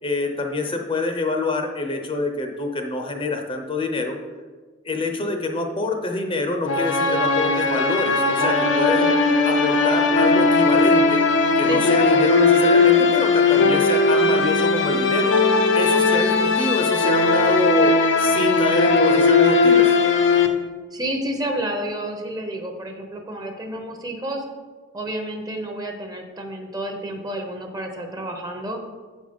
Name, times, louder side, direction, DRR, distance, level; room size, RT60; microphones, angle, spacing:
voice 1, 0.0-4.2 4.8-9.1 9.4-11.2 11.6-15.3 15.7-19.9, left 2 dB, 30° left, 4 dB, 0.7 m, -26 dB
sound 1, 6.7-20.5, left 3 dB, 70° left, 0.7 m, -18 dB
voice 2, 20.9-24.4 24.9-28.8, right 1 dB, 20° right, 4 dB, 0.8 m, -30 dB
7.2 x 5.2 x 5.2 m, 1.4 s
head